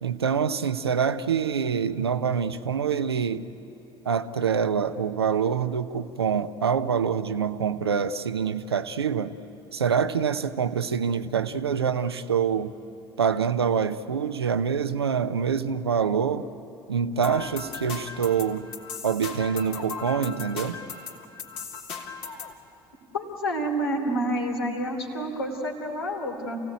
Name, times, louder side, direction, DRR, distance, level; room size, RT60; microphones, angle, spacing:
voice 1, 0.0-3.5 4.0-9.3 9.7-12.7 13.2-16.5 16.9-18.7 19.0-20.8, right 7 dB, 80° right, 11 dB, 0.8 m, -25 dB
sound 1, 17.2-22.6, left 6 dB, 55° left, 2.5 m, -37 dB
voice 2, 23.1-26.6, right 1 dB, 75° left, 1 dB, 3.4 m, -29 dB
28.0 x 16.5 x 9.4 m, 2.8 s
figure-of-eight pair, 60°, 13 cm